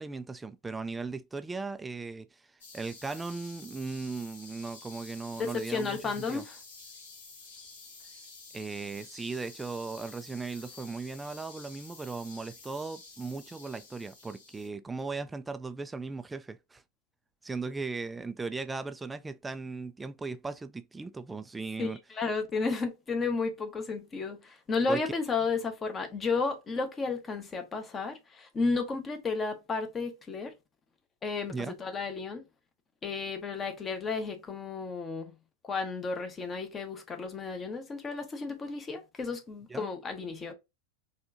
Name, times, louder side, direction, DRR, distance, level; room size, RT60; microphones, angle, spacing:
voice 1, 0.0-2.5 2.7-6.4 8.5-16.8 17.4-22.0 24.9-25.0 31.5-31.7 39.7-39.9, right 4 dB, 10° right, 0.3 m, -37 dB
sound 1, 2.6-14.7, left 4 dB, 60° left, 1.7 m, -50 dB
voice 2, 5.4-6.6 21.8-30.5 31.2-32.4 33.0-35.3 35.6-40.5, left 4 dB, 20° left, 0.9 m, -33 dB
4.3 x 3.1 x 2.6 m
figure-of-eight pair, 90°, 0 cm